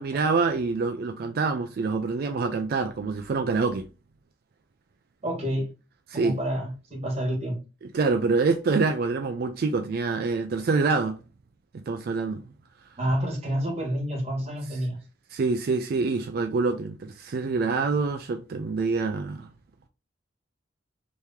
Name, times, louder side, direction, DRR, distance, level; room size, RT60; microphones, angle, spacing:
voice 1, 0.0-3.9 6.1-6.4 7.8-11.2 11.7-12.4 15.3-19.5, right 4 dB, 55° right, 0.3 m, -26 dB
voice 2, 5.2-5.7 6.1-7.6 13.0-15.0, equal, 35° right, 1.5 m, -28 dB
3.2 x 2.8 x 3.4 m
head